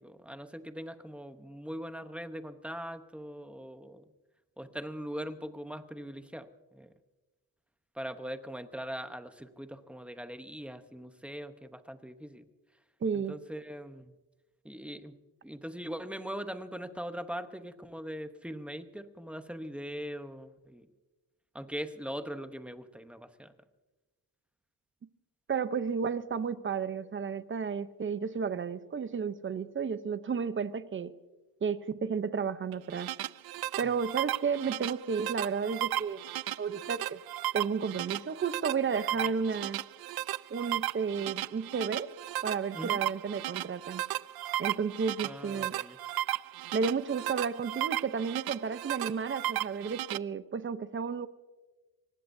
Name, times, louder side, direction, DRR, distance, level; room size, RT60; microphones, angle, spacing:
voice 1, 0.0-4.0 4.6-6.5 6.7-6.9 8.0-12.5 13.1-14.1 14.6-15.1 15.4-20.9 21.5-23.5 33.9-34.0 42.7-43.0 45.2-46.0, equal, 5° right, 8 dB, 0.9 m, -41 dB
voice 2, 13.0-13.4 25.5-31.1 31.6-33.1 33.8-36.2 36.6-37.2 37.5-39.8 40.5-42.1 42.4-44.0 44.6-45.7 46.7-51.3, right 6 dB, 30° right, 13 dB, 0.7 m, -32 dB
sound 1, 32.7-50.2, right 14 dB, 70° right, 0.5 m, -35 dB
24.5 x 19.5 x 2.7 m, 1.2 s
cardioid pair, 140°, 38 cm